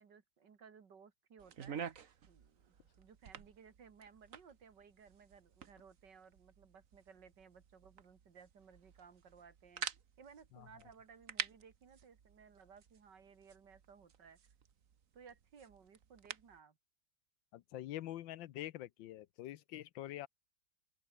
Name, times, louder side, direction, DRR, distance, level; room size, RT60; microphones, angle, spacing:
voice 1, 0.0-9.9 10.2-14.4 15.1-16.8, right 6 dB, 70° right, 2.7 m, -60 dB
sound 1, 1.4-16.6, right 7 dB, 50° right, 1.5 m, -50 dB
voice 2, 17.5-20.3, left 14 dB, 85° left, 1.5 m, -45 dB
open air
omnidirectional pair, 2.0 m